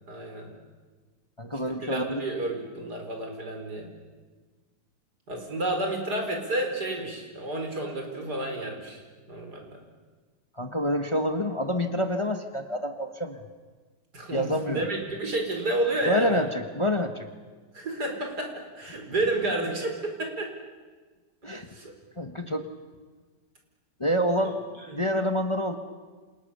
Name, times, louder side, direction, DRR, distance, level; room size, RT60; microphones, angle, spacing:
voice 1, 0.1-0.5 1.7-3.9 5.3-9.0 9.3-9.8 14.1-16.5 17.7-20.5 21.7-21.9 24.9-25.0, right 1 dB, 75° right, 3 dB, 5.3 m, -30 dB
voice 2, 1.4-2.2 10.6-13.4 14.3-14.8 16.0-17.3 18.9-19.0 21.4-21.7 22.2-22.6 24.0-24.6 24.9-25.8, equal, 20° left, 6 dB, 1.4 m, -27 dB
29.5 x 27.0 x 7.0 m, 1.4 s
omnidirectional pair, 1.8 m